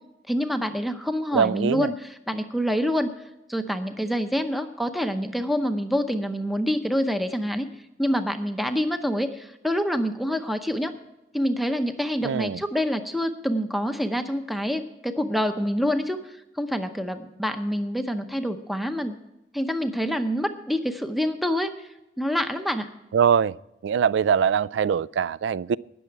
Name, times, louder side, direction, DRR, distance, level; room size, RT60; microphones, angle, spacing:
voice 1, 0.3-3.1 3.5-7.7 8.0-10.9 11.3-19.2 19.5-21.7 22.2-22.9, equal, ahead, 8 dB, 0.7 m, -26 dB
voice 2, 1.3-1.9 12.2-12.6 23.1-23.5 23.8-25.8, right 7 dB, 80° right, 22 dB, 0.3 m, -22 dB
19.0 x 6.9 x 4.6 m, 0.94 s
head